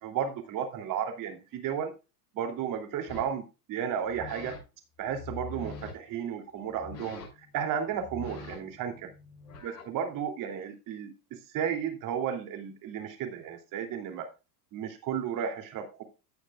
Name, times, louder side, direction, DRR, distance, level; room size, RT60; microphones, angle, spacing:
voice 1, 0.0-1.9 2.3-4.5 5.0-7.2 7.5-9.1 9.6-11.1 11.5-14.3 14.7-16.0, right 8 dB, 40° right, 5 dB, 3.1 m, -33 dB
sound 1, 3.1-3.4 4.0-4.6 5.0-5.9 6.7-7.5 7.9-9.9, left 3 dB, 85° left, 6.3 m, -44 dB
16.0 x 6.6 x 2.5 m, 0.29 s
hypercardioid pair, 110°, 47 cm